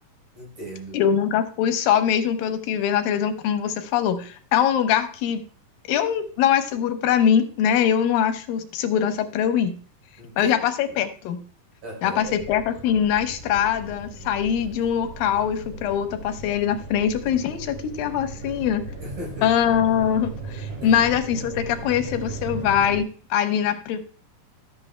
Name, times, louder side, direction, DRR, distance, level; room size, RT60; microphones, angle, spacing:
voice 1, 0.3-1.0 10.2-10.5 10.9-11.0 11.8-12.4 19.0-19.6 20.8-21.1, equal, 50° right, -3 dB, 4.9 m, -37 dB
voice 2, 0.9-5.4 5.9-9.8 10.4-11.4 12.0-18.8 19.4-24.0, left 9 dB, 85° left, 8 dB, 2.5 m, -22 dB
sound 1, 12.2-23.0, right 2 dB, 70° right, 6.9 m, -37 dB
12.5 x 7.5 x 2.2 m, 0.40 s
omnidirectional pair, 4.0 m